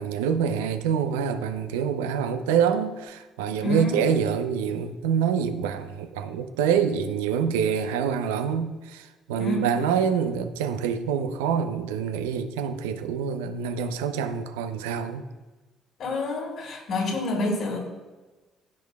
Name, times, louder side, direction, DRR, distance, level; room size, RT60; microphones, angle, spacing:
voice 1, 0.0-15.3, right 7 dB, 80° right, 0.6 m, -26 dB
voice 2, 3.5-4.2 9.4-9.8 16.0-17.8, left 1 dB, 60° left, 2.8 m, -28 dB
15.0 x 6.3 x 2.3 m
hypercardioid pair, 50°, 0 cm